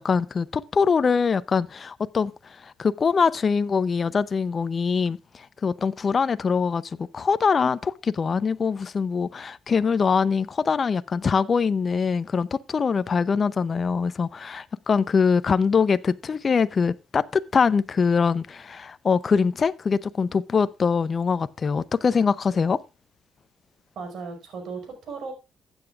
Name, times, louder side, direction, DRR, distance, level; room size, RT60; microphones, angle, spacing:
voice 1, 0.0-22.8, left 5 dB, 40° left, 0.6 m, -23 dB
voice 2, 24.0-25.3, right 4 dB, 70° right, 5.2 m, -36 dB
15.0 x 8.9 x 2.4 m
cardioid pair, 90°, 0 cm